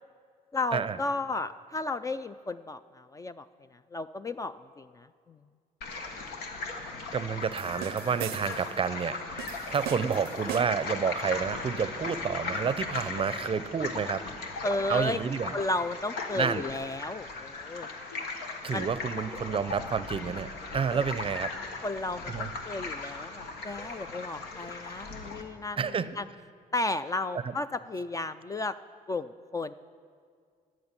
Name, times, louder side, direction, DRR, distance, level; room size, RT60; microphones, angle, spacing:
voice 1, 0.5-3.5 3.7-5.4 14.6-15.2 15.5-17.9 18.7-18.9 20.9-21.1 21.8-26.3 26.7-28.8 29.1-29.7, left 2 dB, 20° left, 12 dB, 0.3 m, -33 dB
sound 1, 5.8-25.4, left 3 dB, 85° left, 1.3 m, -38 dB
voice 2, 7.1-14.2 14.9-15.5 16.3-16.6 18.6-20.5 20.7-21.5 22.3-22.5 25.8-26.2, right 6 dB, 35° right, 14 dB, 0.5 m, -30 dB
sound 2, 7.6-8.7 9.4-10.9, right 12 dB, 85° right, 0.5 m, -40 dB
14.0 x 6.2 x 9.7 m, 2.1 s
cardioid pair, 85°, 16 cm